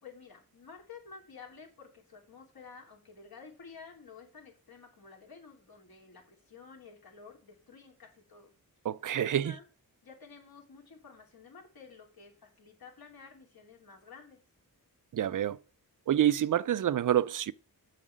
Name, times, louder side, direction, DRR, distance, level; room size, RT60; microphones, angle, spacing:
voice 1, 0.0-8.5 9.2-9.6 10.0-14.4, left 5 dB, 70° left, 3.0 m, -52 dB
voice 2, 8.8-9.5 15.1-15.6 16.1-17.5, right 11 dB, 55° right, 0.4 m, -27 dB
7.2 x 6.5 x 6.4 m
wide cardioid pair, 90°, 37 cm